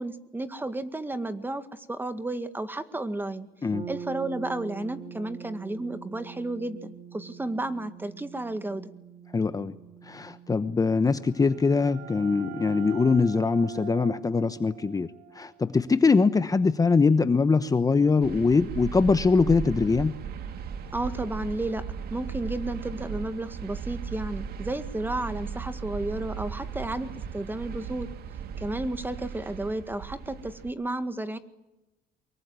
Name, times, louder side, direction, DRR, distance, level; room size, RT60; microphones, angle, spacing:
voice 1, 0.0-3.5 3.9-8.9 20.9-21.8 22.1-28.1 28.6-31.4, right 2 dB, 10° right, 11 dB, 1.9 m, -32 dB
sound 1, 3.7-13.5, right 7 dB, 40° right, 2.2 m, -45 dB
voice 2, 9.3-9.7 10.0-15.1 15.3-20.1, left 4 dB, 20° left, 12 dB, 1.0 m, -22 dB
sound 2, 11.1-16.6, right 9 dB, 85° right, 2.1 m, -44 dB
sound 3, 18.2-30.7, right 7 dB, 65° right, 2.1 m, -37 dB
24.0 x 22.5 x 9.5 m, 0.99 s
cardioid pair, 110°, 17 cm